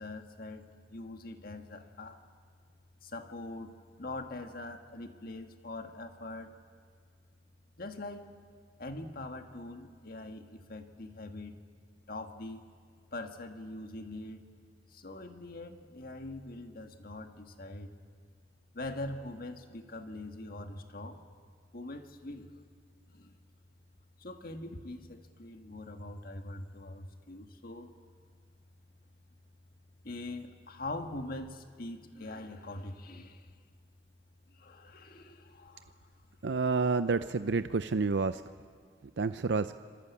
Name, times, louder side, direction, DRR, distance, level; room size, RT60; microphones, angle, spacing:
voice 1, 0.0-2.2 3.0-6.5 7.8-8.3 8.8-11.6 12.1-12.7 13.1-14.4 14.9-18.0 18.7-21.2 21.7-22.6 23.1-23.4 24.2-27.9 30.0-33.5 34.5-36.1, left 2 dB, 55° left, 5 dB, 1.8 m, -43 dB
voice 2, 36.4-38.4 39.2-39.8, right 4 dB, 90° right, 11 dB, 0.6 m, -29 dB
27.0 x 22.5 x 8.4 m, 2.1 s
head